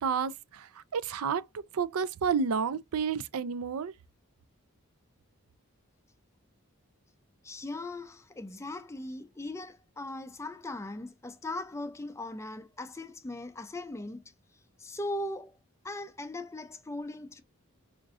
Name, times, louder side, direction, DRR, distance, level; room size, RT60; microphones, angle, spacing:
voice 1, 0.0-3.9, right 6 dB, 85° right, 0.4 m, -31 dB
voice 2, 7.4-14.3 14.8-15.6 15.8-17.4, left 2 dB, 15° left, 0.4 m, -39 dB
5.0 x 2.6 x 2.4 m
head